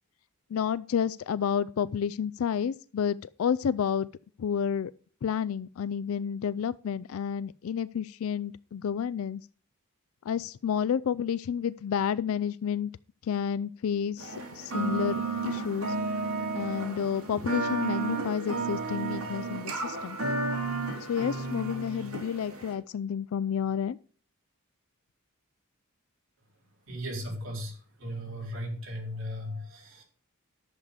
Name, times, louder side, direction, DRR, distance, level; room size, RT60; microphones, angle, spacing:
voice 1, 0.5-4.1 4.4-4.9 5.2-9.4 10.3-12.9 13.2-16.0 16.5-20.2 21.1-24.0, left 7 dB, 70° left, 0.4 m, -30 dB
sound 1, 14.2-22.7, right 3 dB, 80° right, 2.9 m, -32 dB
voice 2, 26.9-30.0, equal, 65° right, 3.8 m, -37 dB
11.0 x 7.4 x 4.9 m
head